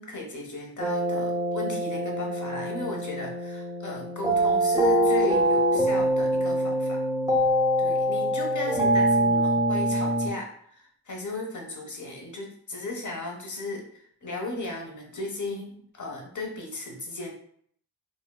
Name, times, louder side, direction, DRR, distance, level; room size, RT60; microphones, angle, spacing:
voice 1, 0.0-7.0 7.8-17.3, left 2 dB, 45° left, 0 dB, 0.8 m, -36 dB
sound 1, 0.8-10.3, right 1 dB, 10° right, 0.5 m, -24 dB
3.4 x 2.3 x 2.2 m, 0.63 s
wide cardioid pair, 75°, 40 cm